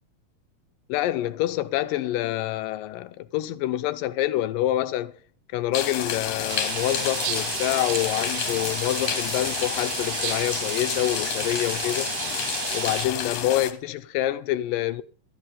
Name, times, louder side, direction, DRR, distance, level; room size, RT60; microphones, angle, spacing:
voice 1, 0.9-5.1 5.5-12.1 12.7-15.0, left 14 dB, 85° left, 2.4 m, -26 dB
sound 1, 5.7-13.7, left 8 dB, 60° left, 2.2 m, -30 dB
sound 2, 6.5-13.1, right 13 dB, 80° right, 2.2 m, -33 dB
13.0 x 8.9 x 5.6 m
omnidirectional pair, 3.9 m